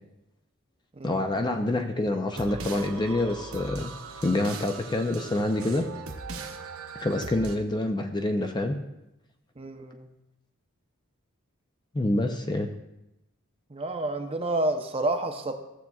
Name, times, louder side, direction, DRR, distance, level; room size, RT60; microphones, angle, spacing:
voice 1, 1.0-3.9 4.2-5.9 7.0-8.8 11.9-12.7, left 1 dB, 20° left, 5 dB, 0.4 m, -27 dB
sound 1, 2.3-7.6, right 4 dB, 70° right, 0.9 m, -39 dB
voice 2, 9.6-10.1 13.7-15.5, right 2 dB, 25° right, 6 dB, 0.6 m, -29 dB
14.5 x 7.2 x 2.3 m, 0.92 s
head